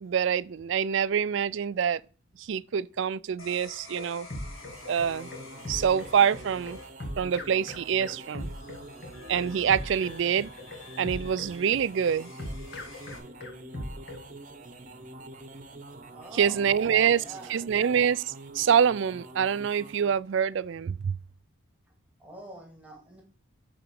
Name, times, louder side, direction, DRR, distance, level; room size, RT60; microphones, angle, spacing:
voice 1, 0.0-2.0 2.4-4.3 4.9-5.3 5.7-6.8 7.2-8.5 9.3-10.5 11.0-12.3 16.3-17.2 17.5-21.2, right 7 dB, 60° right, 0.3 m, -26 dB
sound 1, 3.4-13.2, left 3 dB, 80° left, 2.4 m, -49 dB
sound 2, 3.6-14.3, left 1 dB, 50° left, 1.5 m, -39 dB
sound 3, 4.4-20.2, right 2 dB, 40° right, 0.9 m, -46 dB
voice 2, 16.1-17.7 22.2-23.2, right 2 dB, 5° right, 2.0 m, -46 dB
8.6 x 4.0 x 6.8 m
head